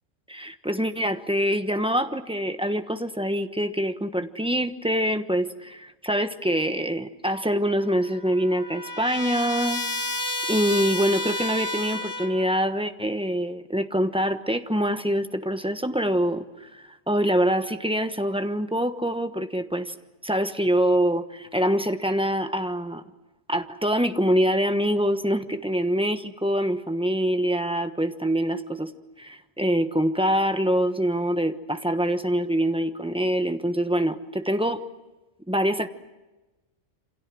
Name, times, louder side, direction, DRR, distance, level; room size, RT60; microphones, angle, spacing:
voice 1, 0.3-10.2 10.5-19.9 20.2-23.0 23.5-34.8 35.5-35.9, equal, 5° right, 8 dB, 1.1 m, -25 dB
Trumpet, 7.8-12.5, left 1 dB, 20° left, 1.5 m, -31 dB
28.0 x 26.5 x 6.3 m, 1.1 s
omnidirectional pair, 1.3 m